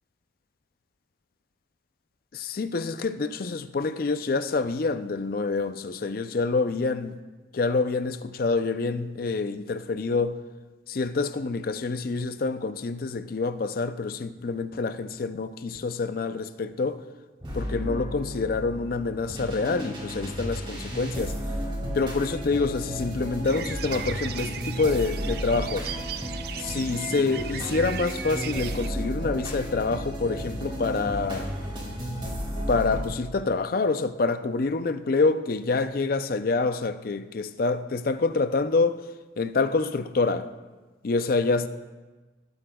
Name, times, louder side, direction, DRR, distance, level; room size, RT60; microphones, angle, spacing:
voice 1, 2.3-7.2 7.5-10.4 10.9-17.0 17.5-21.3 21.9-25.9 26.6-31.5 32.7-39.0 39.4-40.5 41.0-41.7, left 3 dB, 50° left, 0.4 m, -27 dB
sound 1, 17.4-33.1, equal, 25° right, 2.4 m, -33 dB
sound 2, 23.4-28.9, right 9 dB, 55° right, 0.4 m, -37 dB
18.0 x 7.6 x 2.3 m
head